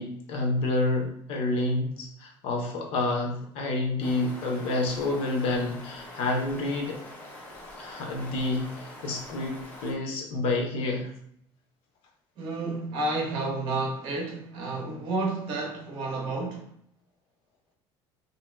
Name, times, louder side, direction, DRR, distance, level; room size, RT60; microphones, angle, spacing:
voice 1, 0.0-7.0 7.8-11.1, left 2 dB, 70° left, 0.7 m, -29 dB
sound 1, 4.0-9.9, left 1 dB, 15° left, 0.5 m, -44 dB
voice 2, 12.4-16.7, right 2 dB, 55° right, 0.9 m, -31 dB
2.7 x 2.1 x 3.2 m
cardioid pair, 170°, 10 cm